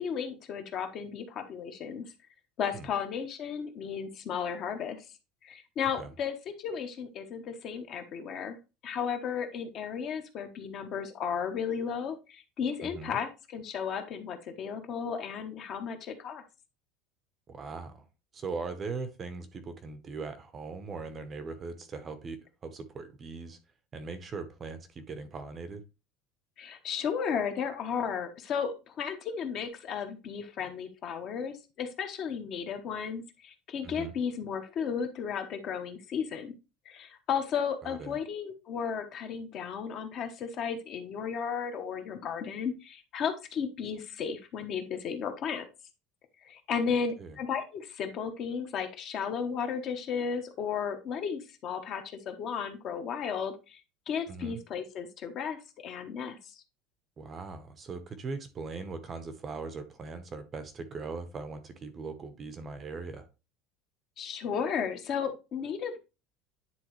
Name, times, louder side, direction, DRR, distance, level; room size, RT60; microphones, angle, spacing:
voice 1, 0.0-2.0 2.6-5.0 5.4-8.6 8.8-16.4 26.6-36.5 36.8-45.6 46.4-53.8 54.1-56.6 64.2-66.0, left 7 dB, 35° left, 6 dB, 1.0 m, -34 dB
voice 2, 12.8-13.2 17.5-18.1 18.3-23.6 23.9-25.8 33.8-34.1 37.8-38.2 47.2-47.4 54.3-54.6 57.2-63.2, right 4 dB, 20° right, 10 dB, 0.8 m, -40 dB
10.0 x 3.7 x 3.1 m, 0.29 s
cardioid pair, 170°, 0 cm